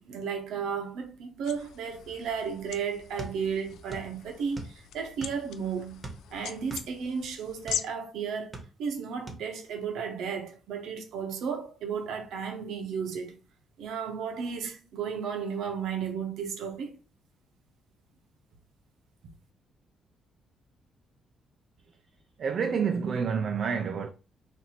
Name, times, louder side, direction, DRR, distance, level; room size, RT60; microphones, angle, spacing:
voice 1, 0.0-6.0 6.3-13.4 13.8-17.0, right 6 dB, 80° right, 0.8 m, -34 dB
sound 1, 1.4-7.8, left 9 dB, 80° left, 0.4 m, -41 dB
sound 2, 3.2-4.1 4.4-5.5 6.0-7.9 8.3-9.0 9.3-9.5, right 3 dB, 30° right, 1.0 m, -41 dB
voice 2, 22.4-24.1, right 6 dB, 55° right, 0.3 m, -28 dB
2.9 x 2.6 x 4.1 m
cardioid pair, 90°, 0 cm